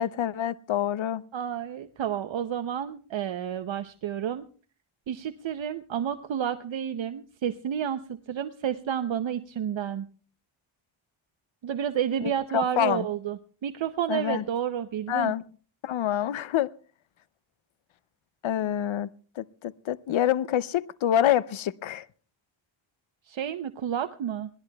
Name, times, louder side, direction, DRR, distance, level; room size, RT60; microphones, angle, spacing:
voice 1, 0.0-1.2 12.5-13.1 14.1-14.4 15.1-15.4 15.8-16.7 18.4-19.1 19.4-22.0, left 11 dB, 70° left, 0.6 m, -26 dB
voice 2, 1.3-4.4 5.1-10.1 11.6-15.4 23.3-24.5, right 9 dB, 65° right, 0.8 m, -30 dB
25.5 x 19.0 x 2.3 m
cardioid pair, 85°, 49 cm